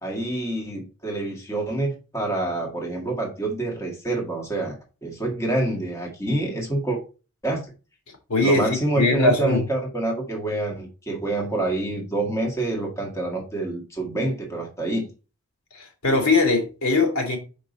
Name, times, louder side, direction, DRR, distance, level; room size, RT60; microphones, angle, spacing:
voice 1, 0.0-4.8 5.0-7.0 7.4-7.6 8.4-15.1, right 2 dB, 15° left, 1.8 m, -27 dB
voice 2, 8.3-9.6 15.7-17.4, left 2 dB, 75° left, 2.8 m, -21 dB
6.3 x 5.3 x 4.1 m
head